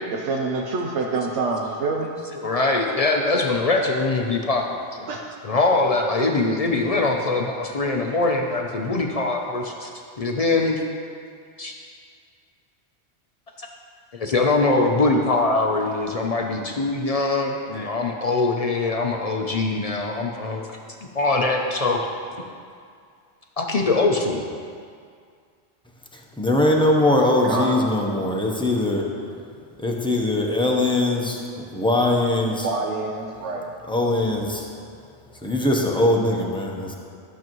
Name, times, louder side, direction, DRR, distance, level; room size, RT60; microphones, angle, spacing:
voice 1, 0.1-2.1 5.1-5.2 6.2-6.3 27.5-27.8 32.6-33.7, right 3 dB, 80° right, 0 dB, 1.0 m, -26 dB
voice 2, 2.3-4.7 5.0-5.1 5.4-9.9 10.2-10.8 11.6-11.7 13.6-13.7 14.1-20.6 21.1-22.0 23.6-24.4, left 3 dB, 45° left, 2 dB, 0.5 m, -22 dB
voice 3, 26.1-29.1 29.8-31.5 31.7-32.7 33.9-35.1 35.3-36.9, left 1 dB, 5° left, -1 dB, 0.7 m, -21 dB
12.0 x 7.0 x 3.0 m, 2.2 s
omnidirectional pair, 1.2 m